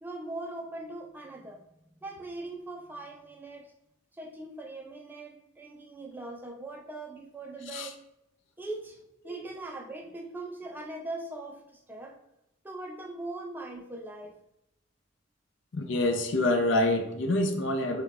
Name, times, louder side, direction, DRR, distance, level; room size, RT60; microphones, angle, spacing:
voice 1, 0.0-1.6 2.0-3.7 4.1-8.0 8.6-9.0 9.2-12.2 12.6-14.4, right 2 dB, 10° right, 2 dB, 0.3 m, -40 dB
voice 2, 15.7-18.0, left 1 dB, 60° left, 5 dB, 0.5 m, -26 dB
5.7 x 2.2 x 3.4 m, 0.82 s
head